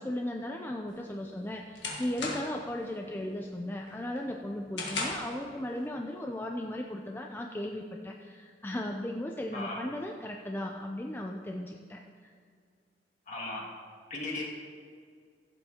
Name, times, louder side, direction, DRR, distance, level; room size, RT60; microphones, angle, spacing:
voice 1, 0.0-12.3, left 1 dB, 10° left, 2 dB, 0.4 m, -36 dB
sound 1, 0.9-2.7 3.1-3.5 3.9-5.4, left 3 dB, 85° left, 1.7 m, -37 dB
voice 2, 13.3-13.6 14.1-14.4, left 2 dB, 45° left, -3 dB, 2.1 m, -36 dB
15.0 x 8.0 x 2.9 m, 2.1 s
head